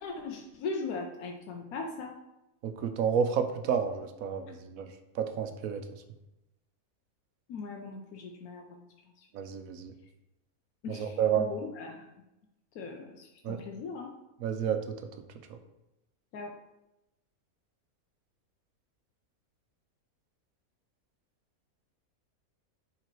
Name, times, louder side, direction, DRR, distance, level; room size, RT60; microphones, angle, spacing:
voice 1, 0.0-2.1 7.5-8.8 10.8-12.0 12.8-14.1 16.3-16.5, left 4 dB, 90° left, 1 dB, 1.2 m, -39 dB
voice 2, 2.6-4.9 5.1-5.8 9.3-9.9 10.9-11.5 13.4-13.6 14.4-14.9, right 7 dB, 75° right, 8 dB, 1.1 m, -30 dB
7.7 x 3.9 x 4.5 m, 0.95 s
omnidirectional pair, 1.5 m